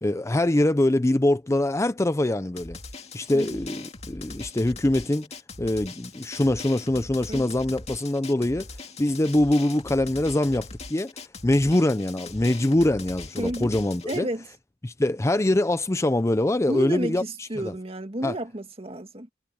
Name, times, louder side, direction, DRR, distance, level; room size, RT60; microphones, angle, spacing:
voice 1, 0.0-2.8 3.1-5.3 5.6-8.7 9.0-11.1 11.4-14.3 14.8-17.7 18.2-18.3, left 1 dB, 15° left, 0.5 m, -23 dB
Drum, 2.6-14.2, left 3 dB, 40° left, 2.1 m, -41 dB
voice 2, 13.4-13.8 14.1-14.5 16.7-19.3, right 1 dB, 35° right, 2.1 m, -32 dB
head